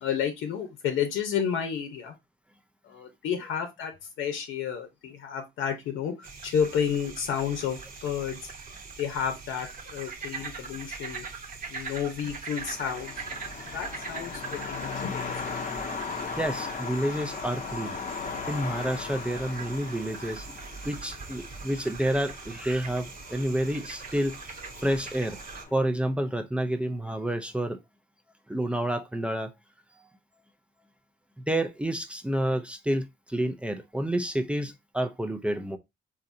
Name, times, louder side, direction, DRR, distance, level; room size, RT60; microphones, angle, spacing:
voice 1, 0.0-2.1 2.8-8.5 9.0-11.2 11.7-13.1 13.7-15.5, left 8 dB, 90° left, 0.8 m, -31 dB
sound 1, 6.2-25.6, right 4 dB, 45° right, 0.9 m, -42 dB
sound 2, 12.6-25.8, left 5 dB, 40° left, 0.6 m, -38 dB
voice 2, 16.4-18.0 18.5-20.6 20.8-24.4 24.8-25.4 25.7-27.8 28.5-29.5 31.4-35.8, right 1 dB, 5° right, 0.4 m, -29 dB
3.8 x 2.6 x 2.6 m
cardioid pair, 90°, 20 cm